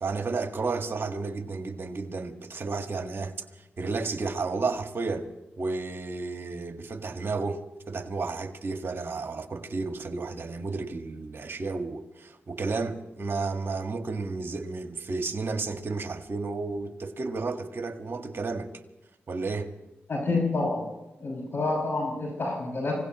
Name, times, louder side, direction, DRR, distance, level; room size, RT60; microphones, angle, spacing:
voice 1, 0.0-5.3 5.6-18.7 19.3-19.7, right 3 dB, 55° right, 1.6 m, -32 dB
voice 2, 20.1-20.8 21.2-23.0, left 3 dB, 55° left, 6.1 m, -28 dB
27.0 x 17.0 x 3.1 m
cardioid pair, 50°, 5 cm